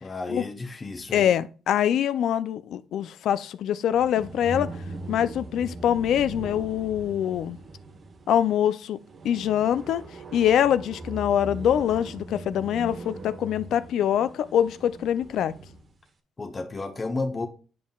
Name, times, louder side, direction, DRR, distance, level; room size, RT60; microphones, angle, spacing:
voice 1, 0.0-1.3 16.4-17.5, left 3 dB, 30° left, 0.9 m, -32 dB
voice 2, 1.1-4.7 5.1-7.6 8.3-9.0 9.2-10.0 10.3-15.5, left 10 dB, 75° left, 0.4 m, -24 dB
sound 1, 3.9-15.9, right 2 dB, 45° right, 1.0 m, -40 dB
9.3 x 5.4 x 2.3 m
cardioid pair, 90°, 0 cm